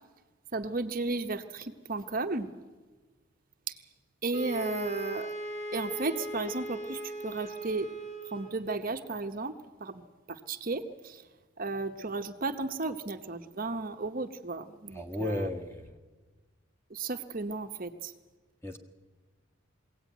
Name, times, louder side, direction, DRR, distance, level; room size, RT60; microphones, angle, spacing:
voice 1, 0.5-2.5 3.7-3.8 4.2-5.3 5.7-7.9 8.3-9.5 9.8-11.2 11.6-15.5 16.9-18.1, right 3 dB, 40° right, 7 dB, 0.9 m, -34 dB
sound 1, 4.3-8.7, right 1 dB, 70° left, 4.1 m, -38 dB
voice 2, 14.9-15.9 18.6-18.8, left 1 dB, 10° left, 5 dB, 1.6 m, -34 dB
22.5 x 17.0 x 9.2 m, 1.3 s
head